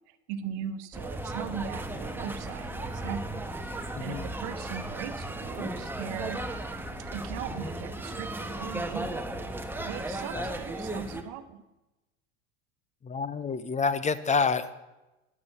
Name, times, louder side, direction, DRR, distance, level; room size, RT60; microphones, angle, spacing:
voice 1, 0.1-3.4 4.0-6.4 7.0-9.2 9.8-11.6, right 9 dB, 65° right, 10 dB, 1.2 m, -39 dB
sound 1, 0.9-11.2, right 1 dB, 5° right, 1.3 m, -35 dB
voice 2, 3.9-4.3 10.3-10.5 13.0-14.7, left 5 dB, 20° left, 14 dB, 0.8 m, -28 dB
12.0 x 9.7 x 6.8 m, 1.0 s
hypercardioid pair, 95°, 32 cm